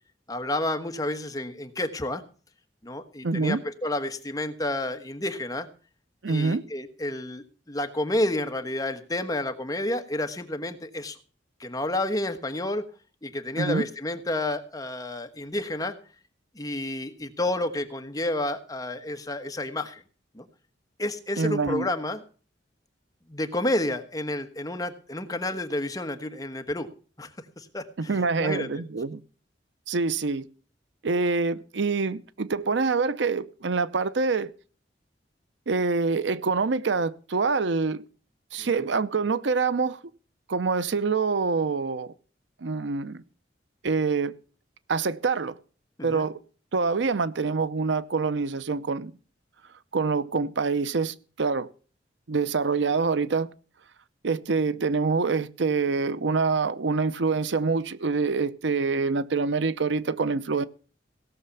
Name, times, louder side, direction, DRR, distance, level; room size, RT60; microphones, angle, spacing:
voice 1, 0.3-2.2 2.8-5.7 6.3-11.2 11.6-12.9 13.2-16.0 16.5-20.0 20.3-20.5 21.0-22.2 23.3-26.9 27.2-27.3 27.6-28.8 38.6-38.9 46.0-46.3, left 1 dB, 20° left, 1.3 m, -30 dB
voice 2, 3.2-3.6 6.2-6.6 13.6-13.8 21.4-21.9 28.0-29.2 29.9-30.5 31.0-34.5 35.7-38.0 38.5-40.0 40.5-42.1 42.6-43.2 43.8-44.4 44.9-45.6 46.0-46.4 46.7-49.1 49.9-51.7 52.3-53.5 54.2-60.6, right 4 dB, 75° right, 0.7 m, -26 dB
17.0 x 6.7 x 6.9 m
head